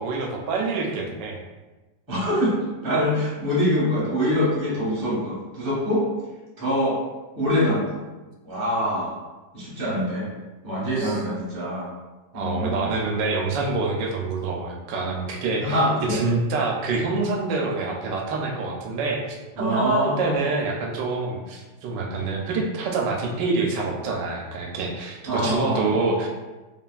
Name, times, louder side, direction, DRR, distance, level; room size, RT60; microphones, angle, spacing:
voice 1, 0.0-1.4 11.0-11.2 12.3-15.8 16.1-26.3, right 3 dB, 85° right, 0 dB, 1.2 m, -26 dB
voice 2, 2.1-2.6 2.8-6.1 6.6-7.0 7.3-8.1 8.4-9.1 9.5-10.3 10.6-11.9 12.3-13.0 15.6-16.2 19.6-20.5 25.2-26.1, equal, 20° right, -8 dB, 0.6 m, -24 dB
3.3 x 2.4 x 2.3 m, 1.2 s
omnidirectional pair, 1.9 m